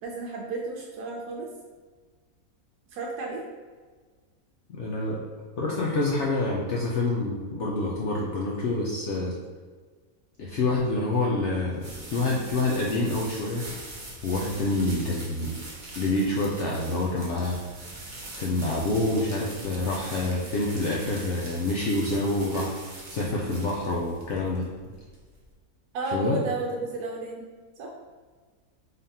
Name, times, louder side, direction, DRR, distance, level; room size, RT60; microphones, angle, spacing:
voice 1, 0.0-1.5 2.9-3.4 25.9-27.4 27.8-27.9, right 2 dB, 90° right, -2 dB, 1.2 m, -32 dB
voice 2, 4.7-5.2 5.6-9.3 10.4-13.7 14.2-15.6 16.0-17.6 18.4-22.8 23.1-24.7 26.1-26.4, left 2 dB, 65° left, -3 dB, 0.7 m, -27 dB
sound 1, 11.1-25.5, right 2 dB, 40° right, 0.7 m, -43 dB
3.8 x 3.5 x 2.7 m, 1.5 s
omnidirectional pair, 1.6 m